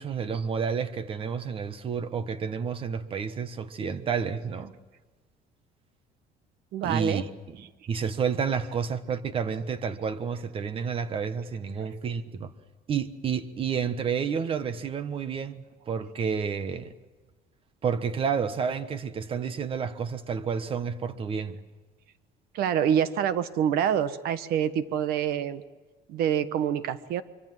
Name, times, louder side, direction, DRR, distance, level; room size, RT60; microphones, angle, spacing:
voice 1, 0.0-4.7 6.8-7.6 7.9-12.5 12.9-16.9 17.8-21.6, right 6 dB, 35° right, 1.3 m, -30 dB
voice 2, 6.7-7.2 22.5-25.6 26.1-27.2, right 9 dB, 70° right, 1.4 m, -26 dB
25.0 x 24.0 x 7.7 m
cardioid pair, 155°, 16 cm